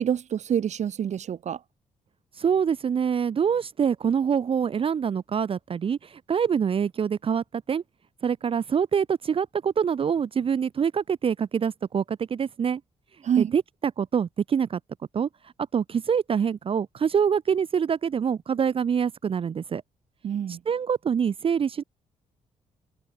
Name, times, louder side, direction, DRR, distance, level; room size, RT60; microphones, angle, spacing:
voice 1, 0.0-1.6 13.2-13.5 20.2-20.6, right 9 dB, 60° right, 1.2 m, -26 dB
voice 2, 2.4-7.8 8.2-12.8 13.4-13.6 14.0-14.8 15.1-15.3 15.7-19.8 20.7-21.8, right 7 dB, 45° right, 0.6 m, -25 dB
cardioid pair, 95°, 13 cm